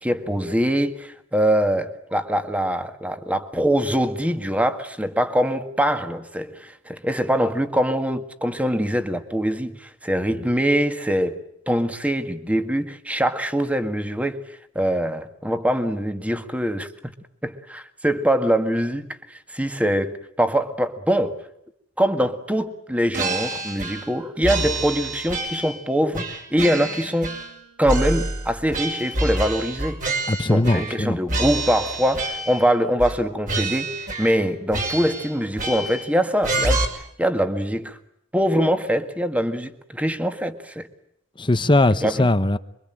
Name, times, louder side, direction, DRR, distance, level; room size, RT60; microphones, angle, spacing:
voice 1, 0.0-11.4 11.7-14.4 14.8-17.1 17.4-19.2 19.5-21.4 22.0-27.4 27.8-30.0 30.5-36.8 37.2-38.0 38.3-40.9 42.0-42.3, equal, 5° right, 1.9 m, -23 dB
sound 1, 23.1-24.1 24.4-25.8 26.1-27.6 27.8-31.0 31.3-32.7 33.0-33.2 33.5-34.4 34.7-36.1 36.4-36.8, right 2 dB, 45° right, 5.6 m, -27 dB
voice 2, 30.3-31.2 41.4-42.6, left 2 dB, 25° left, 1.0 m, -19 dB
27.5 x 23.5 x 8.9 m
head